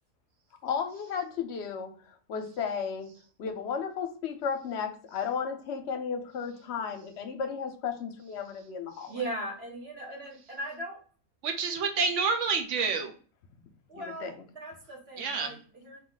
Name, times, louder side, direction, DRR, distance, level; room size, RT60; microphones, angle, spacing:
voice 1, 0.6-3.1 3.4-9.1 13.9-14.3, left 6 dB, 55° left, 5 dB, 0.9 m, -34 dB
voice 2, 9.1-11.0 13.9-16.0, right 1 dB, 45° right, -1 dB, 1.4 m, -39 dB
voice 3, 11.4-13.1 15.2-15.6, right 5 dB, 60° right, 4 dB, 0.9 m, -28 dB
4.1 x 2.7 x 3.8 m, 0.41 s
omnidirectional pair, 1.6 m